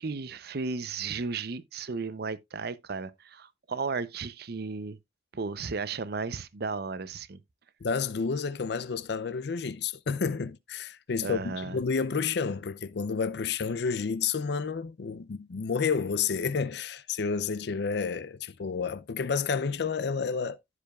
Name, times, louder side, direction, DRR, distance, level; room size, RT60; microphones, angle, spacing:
voice 1, 0.0-5.0 5.3-7.4 11.2-11.8, right 4 dB, 60° right, 0.6 m, -34 dB
voice 2, 7.8-20.6, left 5 dB, 65° left, 0.5 m, -30 dB
15.0 x 5.0 x 2.3 m
head